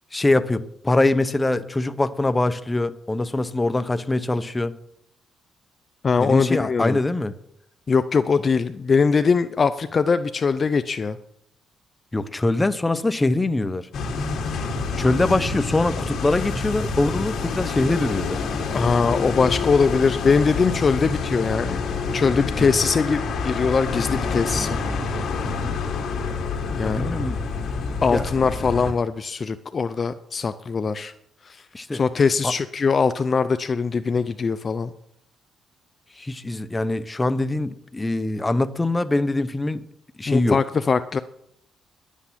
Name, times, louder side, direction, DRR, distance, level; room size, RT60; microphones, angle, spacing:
voice 1, 0.1-4.7 6.2-7.3 12.1-13.9 15.0-18.4 22.6-22.7 25.4-25.7 26.8-27.4 28.1-28.3 31.7-32.0 32.4-32.5 36.2-39.8 40.2-40.6, left 2 dB, 15° left, 0.9 m, -23 dB
voice 2, 6.0-7.0 7.9-11.2 18.7-21.8 22.1-24.8 26.7-27.2 28.0-31.1 31.5-31.6 31.9-34.9 40.3-41.2, left 5 dB, 40° left, 0.6 m, -21 dB
sound 1, 13.9-28.9, left 4 dB, 65° left, 2.1 m, -27 dB
11.5 x 8.4 x 7.4 m
cardioid pair, 90°, 0 cm